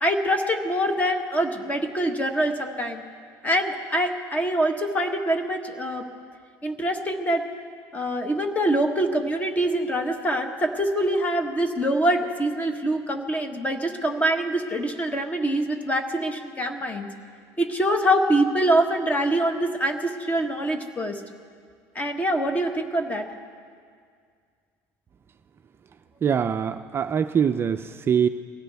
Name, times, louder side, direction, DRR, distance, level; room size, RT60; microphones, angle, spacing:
voice 1, 0.0-3.0 3.4-6.1 6.6-7.5 7.9-17.1 17.6-21.2 21.9-23.3, right 1 dB, 20° left, 6 dB, 1.5 m, -24 dB
voice 2, 26.2-28.3, right 7 dB, 30° right, 8 dB, 0.4 m, -23 dB
22.5 x 17.0 x 3.5 m, 2.1 s
supercardioid pair, 110°, 8 cm